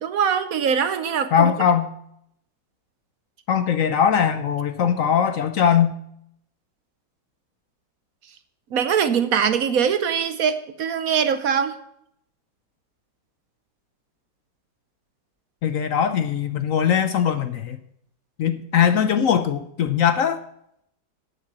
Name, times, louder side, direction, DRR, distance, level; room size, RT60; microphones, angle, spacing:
voice 1, 0.0-1.5 8.7-11.8, right 7 dB, 65° right, 12 dB, 1.1 m, -22 dB
voice 2, 1.3-1.9 3.5-5.9 15.6-17.8 18.4-20.4, left 8 dB, 60° left, 10 dB, 0.9 m, -20 dB
9.3 x 7.7 x 7.5 m, 0.72 s
omnidirectional pair, 1.8 m